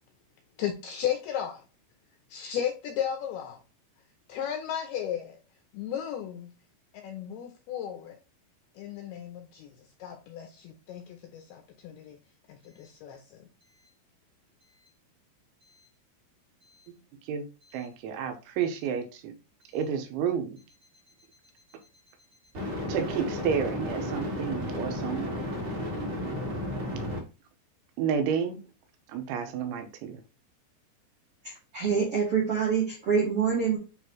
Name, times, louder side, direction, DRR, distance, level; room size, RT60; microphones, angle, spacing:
voice 1, 0.6-1.6 2.3-3.6 4.3-5.4 5.7-6.5 6.9-8.2 8.8-9.7 10.0-12.2 12.5-13.5, left 9 dB, 80° left, 2.3 m, -35 dB
sound 1, 17.7-17.8 22.5-27.2, left 1 dB, 40° right, 2.0 m, -33 dB
voice 2, 17.7-19.3 19.7-20.6 22.9-25.5 28.0-28.6 29.1-30.2, right 7 dB, 90° right, 3.4 m, -30 dB
voice 3, 31.4-33.8, right 6 dB, 70° right, 1.4 m, -26 dB
9.4 x 3.2 x 3.1 m
omnidirectional pair, 5.3 m